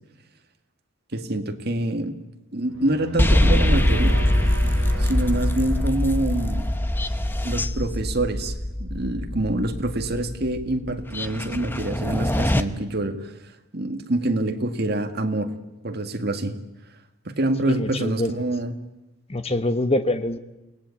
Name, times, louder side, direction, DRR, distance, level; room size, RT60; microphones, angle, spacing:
voice 1, 1.1-2.2 2.5-4.2 5.0-6.7 7.4-8.5 8.8-13.3 13.7-15.5 15.8-16.6 17.3-18.7, right 1 dB, 50° right, 5 dB, 1.9 m, -26 dB
sound 1, 2.7-6.6, right 1 dB, 65° right, 2.0 m, -35 dB
sound 2, 3.2-12.6, left 1 dB, 10° left, 0.9 m, -23 dB
voice 2, 17.7-18.3 19.3-20.4, left 1 dB, 30° left, 9 dB, 1.2 m, -24 dB
28.5 x 18.5 x 8.5 m, 1.0 s
head